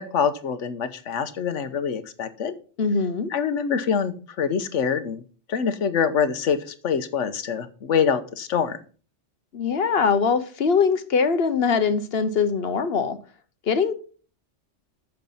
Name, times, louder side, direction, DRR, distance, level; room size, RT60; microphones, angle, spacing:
voice 1, 0.0-2.5 3.3-5.2 5.5-6.6 6.8-8.8, left 6 dB, 85° left, 12 dB, 1.3 m, -25 dB
voice 2, 2.8-3.3 9.5-13.2 13.7-13.9, left 5 dB, 60° left, 12 dB, 1.1 m, -22 dB
9.3 x 6.8 x 5.5 m, 0.40 s
omnidirectional pair, 1.2 m